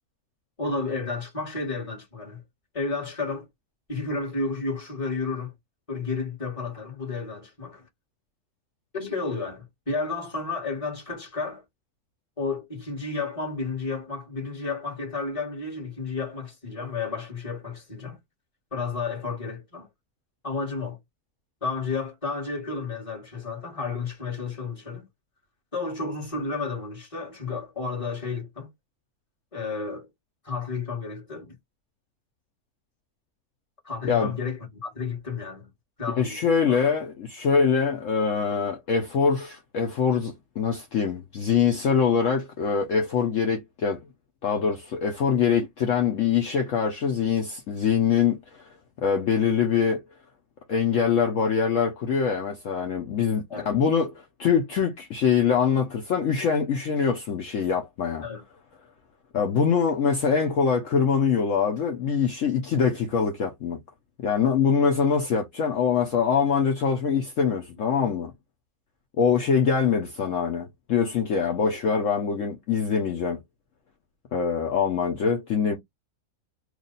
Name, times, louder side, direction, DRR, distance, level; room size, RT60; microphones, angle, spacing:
voice 1, 0.6-2.4 2.7-3.5 3.9-5.5 5.9-7.9 8.9-11.6 12.4-18.2 18.7-19.9 20.4-21.0 21.6-25.1 25.7-28.7 29.5-30.1 30.4-31.6 33.8-35.7 36.0-36.4 36.7-36.9 53.5-53.7 58.2-58.4, left 4 dB, 20° left, 1.7 m, -32 dB
voice 2, 36.2-44.0 44.4-48.6 49.0-50.0 50.7-58.2 59.3-63.8 64.2-68.3 69.2-73.4 74.3-75.8, left 6 dB, 60° left, 1.0 m, -24 dB
3.2 x 2.5 x 3.9 m
omnidirectional pair, 1.6 m